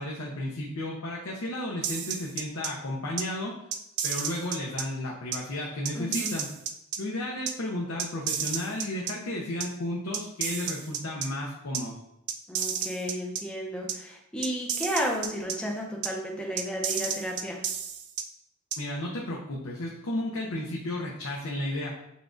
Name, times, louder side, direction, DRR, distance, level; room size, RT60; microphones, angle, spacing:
voice 1, 0.0-3.5 4.0-6.5 7.0-12.0 18.8-22.0, left 1 dB, 75° left, -2 dB, 0.7 m, -33 dB
sound 1, 1.8-2.7 3.2-3.3 3.7-4.8 5.3-5.4 5.9-7.0 7.5-7.6 8.0-9.1 9.6-9.7 10.1-11.3 11.7-11.8 12.3-13.4 13.9-14.0 14.4-15.6 16.0-16.1 16.6-18.2 18.7-18.8, right 8 dB, 55° right, 0.4 m, -31 dB
voice 2, 5.9-6.4 12.5-17.6, equal, 5° left, -2 dB, 0.7 m, -33 dB
6.7 x 2.4 x 2.6 m, 0.82 s
head